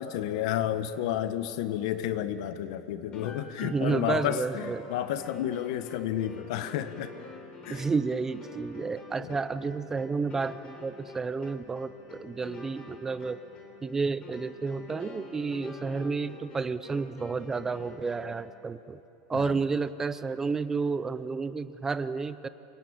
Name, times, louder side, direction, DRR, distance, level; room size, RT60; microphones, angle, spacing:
voice 1, 0.0-7.1 7.6-7.8 9.2-9.3 19.3-19.5, left 11 dB, 65° left, 11 dB, 1.4 m, -31 dB
sound 1, 3.1-18.4, left 3 dB, 25° left, 3.8 m, -47 dB
voice 2, 3.6-4.9 7.7-13.4 13.8-19.0 19.3-22.5, right 4 dB, 15° right, 14 dB, 0.6 m, -31 dB
27.0 x 23.5 x 8.9 m, 2.9 s
supercardioid pair, 150°, 3 cm